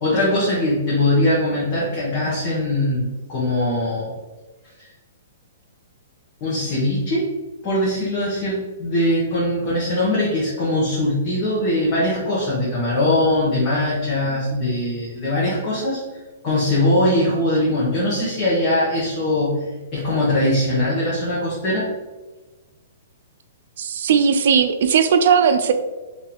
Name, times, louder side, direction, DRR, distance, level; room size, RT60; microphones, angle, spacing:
voice 1, 0.0-4.2 4.8-4.9 6.4-7.3 7.6-16.0 16.4-19.6 19.9-21.9, left 1 dB, 25° left, -8 dB, 1.0 m, -21 dB
voice 2, 23.8-25.7, right 7 dB, 60° right, 8 dB, 0.4 m, -17 dB
3.8 x 2.6 x 2.9 m, 1.2 s
hypercardioid pair, 160°, 0 cm